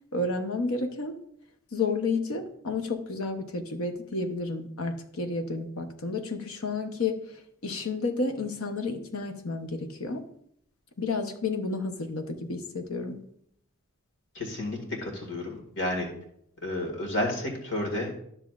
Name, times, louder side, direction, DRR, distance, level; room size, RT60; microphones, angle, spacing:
voice 1, 0.1-1.2 1.7-10.2 11.0-13.2, left 3 dB, 75° left, 6 dB, 0.9 m, -31 dB
voice 2, 14.3-16.1 16.6-18.2, left 1 dB, 55° left, 0 dB, 2.0 m, -31 dB
12.5 x 6.5 x 2.5 m, 0.71 s
head